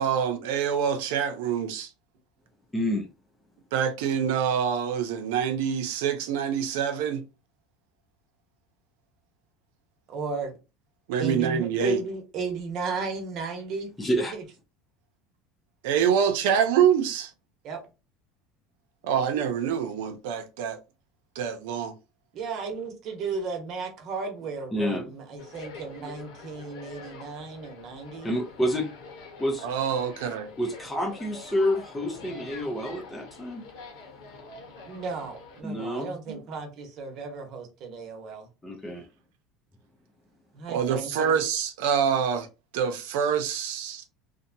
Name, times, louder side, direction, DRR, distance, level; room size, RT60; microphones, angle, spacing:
voice 1, 0.0-1.9 3.7-7.2 11.1-12.0 15.8-17.3 19.0-20.8 21.4-21.9 29.6-30.5 36.3-36.4 40.7-42.5 42.7-44.0, right 8 dB, 80° right, 0.6 m, -26 dB
voice 2, 2.7-3.1 14.0-14.4 24.7-25.1 28.2-28.9 29.4-29.7 30.6-33.6 35.6-36.1 38.6-39.1, equal, 10° left, 0.6 m, -28 dB
voice 3, 10.1-10.5 11.2-13.9 14.3-14.4 17.6-17.8 22.3-28.3 34.8-38.5 40.5-41.3, right 4 dB, 50° right, 1.0 m, -34 dB
sound 1, 25.4-35.6, left 3 dB, 80° left, 1.1 m, -45 dB
2.8 x 2.2 x 2.6 m
supercardioid pair, 130°, 0 cm